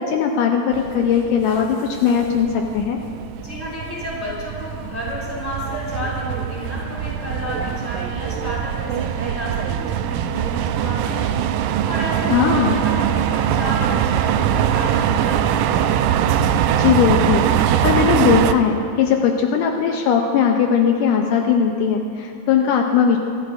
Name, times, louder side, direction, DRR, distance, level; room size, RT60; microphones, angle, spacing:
voice 1, 0.0-2.5 2.7-3.0 12.3-12.8 16.8-23.2, left 7 dB, 80° left, 2 dB, 2.1 m, -19 dB
sound 1, 0.7-18.5, right 9 dB, 85° right, 1.7 m, -22 dB
voice 2, 3.4-11.3 11.9-15.7, left 1 dB, 5° left, -7 dB, 3.3 m, -31 dB
26.0 x 11.0 x 2.6 m, 2.4 s
omnidirectional pair, 4.0 m